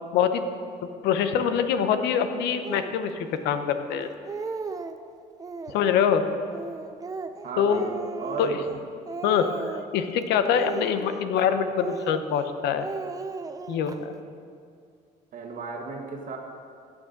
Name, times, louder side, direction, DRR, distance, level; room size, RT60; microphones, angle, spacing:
voice 1, 0.1-0.4 1.0-4.1 5.7-6.2 7.6-7.8 8.4-8.6 9.2-9.5 9.9-12.9 13.7-13.9, left 8 dB, 85° left, 9 dB, 0.8 m, -24 dB
Speech, 2.6-3.0 3.7-3.8 4.1-5.0 5.4-6.0 6.5-8.8 9.1-10.0 10.5-11.4 11.8-12.5 12.8-14.0, right 4 dB, 20° right, 0.5 m, -36 dB
voice 2, 7.4-8.6 15.3-16.4, right 4 dB, 55° right, 1 dB, 1.4 m, -34 dB
14.5 x 8.9 x 3.9 m, 2.3 s
cardioid pair, 110°, 17 cm